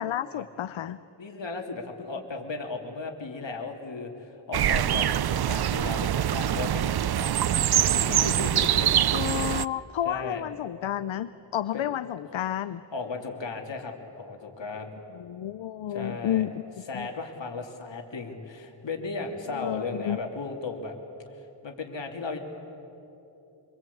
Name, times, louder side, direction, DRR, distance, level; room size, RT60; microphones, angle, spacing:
voice 1, 0.0-1.0 9.1-12.8 15.1-16.6 16.9-17.1 19.5-20.2, left 11 dB, 90° left, 13 dB, 0.6 m, -31 dB
voice 2, 1.2-8.9 9.2-9.4 10.0-10.4 11.7-11.8 12.9-15.0 15.9-16.4 16.9-20.9 21.6-22.4, left 3 dB, 70° left, 3 dB, 3.0 m, -36 dB
sound 1, 4.5-9.7, right 11 dB, 55° right, 0.5 m, -24 dB
26.0 x 24.5 x 8.5 m, 3.0 s
wide cardioid pair, 105°, 45 cm